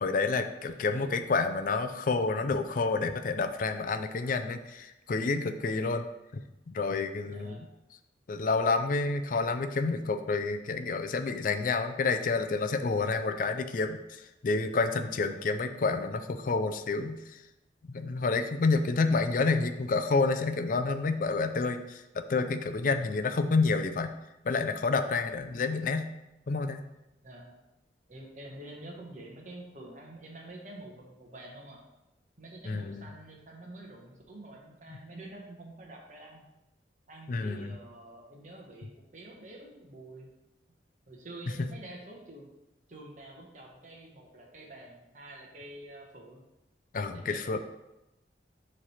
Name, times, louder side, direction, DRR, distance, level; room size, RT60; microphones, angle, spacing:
voice 1, 0.0-6.0 6.3-6.4 6.7-7.6 8.3-17.4 17.9-24.1 24.5-26.1 26.5-26.8 32.7-33.1 37.3-37.7 46.9-47.6, left 4 dB, 50° left, 8 dB, 0.4 m, -29 dB
voice 2, 0.6-1.3 7.3-7.6 27.2-27.5 28.1-31.8 32.4-36.4 37.1-40.3 41.1-42.5 42.9-46.4 47.1-47.6, right 1 dB, 45° right, -1 dB, 1.1 m, -47 dB
7.3 x 3.3 x 5.6 m, 0.94 s
head